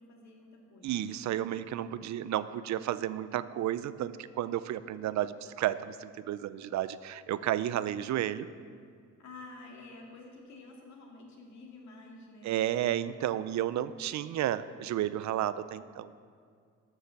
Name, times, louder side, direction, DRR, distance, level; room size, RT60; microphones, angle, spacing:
voice 1, 0.0-1.1 9.2-12.6, left 2 dB, 65° left, 0 dB, 2.5 m, -50 dB
voice 2, 0.8-8.5 12.4-16.1, right 12 dB, 65° right, 15 dB, 0.5 m, -32 dB
13.0 x 7.4 x 6.5 m, 2.1 s
cardioid pair, 90°, 30 cm